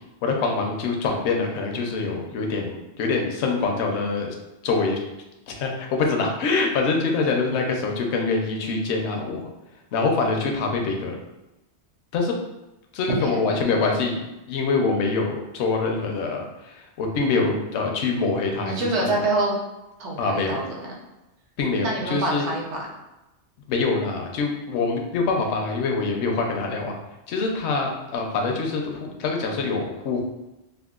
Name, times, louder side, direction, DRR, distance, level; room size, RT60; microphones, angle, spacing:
voice 1, 0.2-4.3 4.6-5.0 5.5-9.5 9.9-11.2 12.1-12.4 12.9-19.2 20.2-20.6 21.6-22.5 23.7-27.0 27.3-30.2, left 4 dB, 75° left, 1 dB, 0.8 m, -25 dB
voice 2, 13.1-13.8 18.6-19.5 20.0-20.9 21.8-22.8, right 2 dB, 70° right, -2 dB, 1.0 m, -26 dB
3.6 x 2.1 x 2.3 m, 0.98 s
omnidirectional pair, 1.2 m